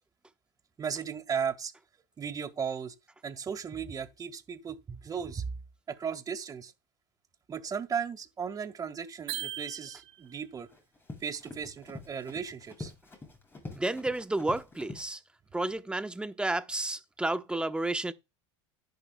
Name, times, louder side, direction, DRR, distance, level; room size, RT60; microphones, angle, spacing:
voice 1, 0.8-1.7 2.2-2.9 3.2-5.4 5.9-6.7 7.5-10.7 11.2-12.9, right 7 dB, 25° right, 1.8 m, -36 dB
sound 1, 9.3-10.4, right 14 dB, 75° right, 4.2 m, -38 dB
Run, 10.2-15.1, left 3 dB, 15° left, 6.6 m, -46 dB
voice 2, 13.7-15.2 15.5-18.1, right 2 dB, 5° right, 1.1 m, -31 dB
14.0 x 10.5 x 2.3 m
supercardioid pair, 110°, 14 cm